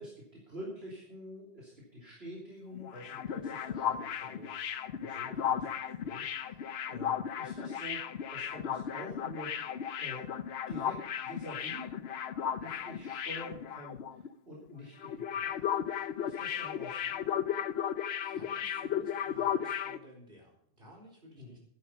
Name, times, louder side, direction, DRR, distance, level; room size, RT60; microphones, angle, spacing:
voice 1, 0.0-5.6 6.0-10.3 10.7-11.9 12.6-15.7 16.2-17.4 21.4-21.6, equal, 75° right, -5 dB, 3.4 m, -47 dB
sound 1, 2.7-14.3 14.5-14.7 15.0-20.0, left 9 dB, 80° left, 1.0 m, -35 dB
voice 2, 5.4-5.7 18.2-21.6, equal, 60° right, -1 dB, 4.7 m, -54 dB
13.0 x 11.0 x 5.7 m, 0.70 s
omnidirectional pair, 1.1 m